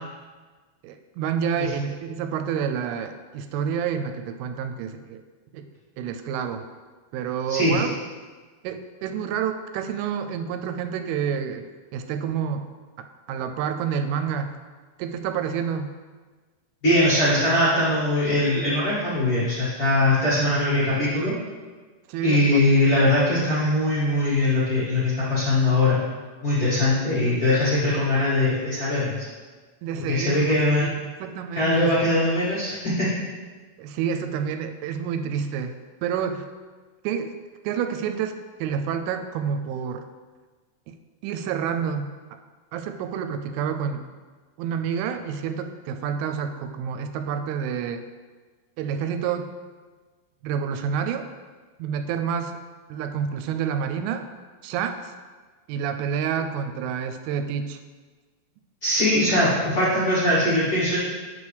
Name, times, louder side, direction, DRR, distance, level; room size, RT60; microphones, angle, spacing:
voice 1, 0.8-5.2 5.5-5.7 6.0-6.6 7.1-8.0 8.6-11.6 11.9-12.7 13.3-14.5 15.0-15.9 22.1-22.6 29.8-31.9 33.8-35.7 36.0-36.5 37.0-37.4 37.6-40.0 40.9-41.0 41.2-42.1 42.7-44.0 44.6-48.0 48.8-49.5 50.4-51.2 51.8-52.6 52.9-54.3 54.6-55.1 55.7-57.8, right 7 dB, 90° right, 7 dB, 3.0 m, -28 dB
voice 2, 7.5-7.8 16.8-21.3 22.2-26.0 26.4-29.2 30.1-30.9 31.6-33.1 58.8-61.0, left 1 dB, 45° left, -11 dB, 1.8 m, -21 dB
7.1 x 6.5 x 3.3 m, 1.4 s
omnidirectional pair, 5.5 m